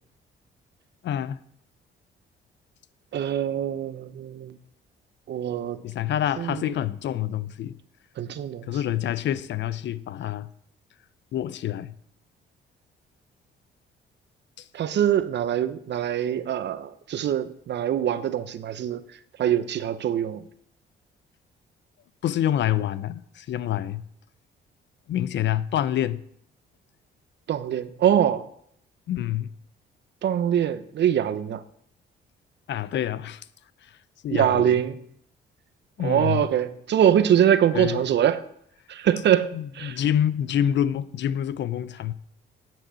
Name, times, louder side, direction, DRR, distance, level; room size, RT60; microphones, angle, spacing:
voice 1, 1.0-1.4 5.8-7.8 8.7-10.5 11.3-11.9 14.6-14.7 22.2-24.0 25.1-26.2 29.1-29.5 32.7-33.5 33.8-34.0 34.2-34.7 36.0-36.5 37.7-38.0 39.5-42.1, left 11 dB, 65° left, 0.6 m, -27 dB
voice 2, 3.1-4.6 5.3-5.8 6.4-6.6 8.2-8.6 14.7-19.0 19.4-20.4 27.5-28.5 30.2-31.6 34.3-35.0 36.0-38.4 38.9-40.0, right 10 dB, 60° right, 0.8 m, -23 dB
9.1 x 7.7 x 6.2 m
cardioid pair, 90°, 20 cm